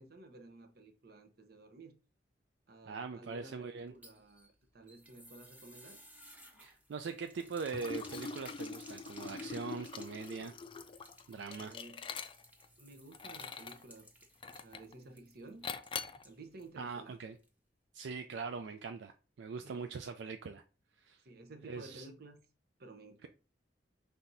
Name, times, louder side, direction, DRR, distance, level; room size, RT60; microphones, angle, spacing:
voice 1, 0.0-2.0 2.7-6.0 11.6-12.1 12.8-14.1 14.6-15.7 16.2-17.2 19.6-19.9 21.2-22.4 22.8-23.3, right 2 dB, 60° right, 0.8 m, -53 dB
voice 2, 2.9-3.9 6.6-10.6 11.3-11.7 16.8-17.4 17.9-20.6 21.0-21.2 21.7-22.1, right 5 dB, 75° right, 0.4 m, -42 dB
sound 1, 3.8-16.8 17.0-17.1 17.4-17.5, right 1 dB, 10° right, 0.9 m, -58 dB
Liquid, 7.6-12.7 13.1-13.8 14.4-14.9 15.6-16.2, left 5 dB, 30° left, 0.3 m, -44 dB
5.7 x 3.4 x 2.6 m
head